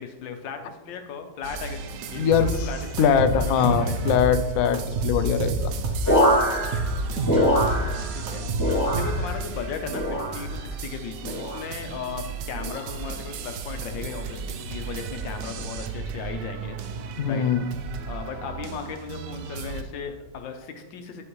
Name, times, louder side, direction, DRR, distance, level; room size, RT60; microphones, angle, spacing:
voice 1, 0.0-2.3 2.6-4.2 7.1-7.5 8.1-8.5 8.9-10.0 10.3-16.8 17.3-17.4 18.0-21.2, left 6 dB, 85° left, 6 dB, 1.6 m, -36 dB
sound 1, 1.4-19.8, right 5 dB, 75° right, 1.2 m, -35 dB
voice 2, 2.2-2.7 3.0-5.7 17.2-17.7, left 7 dB, 70° left, 9 dB, 0.9 m, -22 dB
sound 2, 2.3-2.6 3.0-4.3 4.7-6.1 6.5-7.9 8.3-9.4, right 2 dB, 55° right, 1.2 m, -28 dB
sound 3, 6.0-8.3 8.5-9.4 9.9-10.6 11.2-11.7 12.6-12.9 13.9-14.2, equal, 10° left, 2.0 m, -24 dB
9.9 x 6.3 x 3.1 m, 1.2 s
omnidirectional pair, 2.0 m